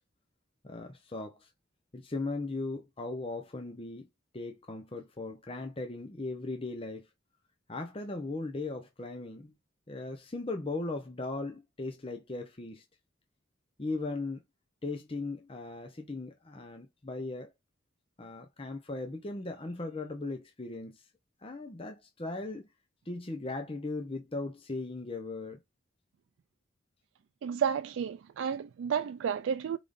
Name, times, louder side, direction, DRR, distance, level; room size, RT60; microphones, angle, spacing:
voice 1, 0.6-1.5 1.9-4.1 4.3-7.1 7.7-9.5 9.9-12.8 13.8-14.4 14.8-17.5 18.2-21.0 21.4-22.7 23.1-25.6, left 2 dB, 25° left, 0.7 m, -38 dB
voice 2, 27.4-29.8, right 7 dB, 70° right, 0.3 m, -31 dB
4.9 x 3.7 x 2.5 m
head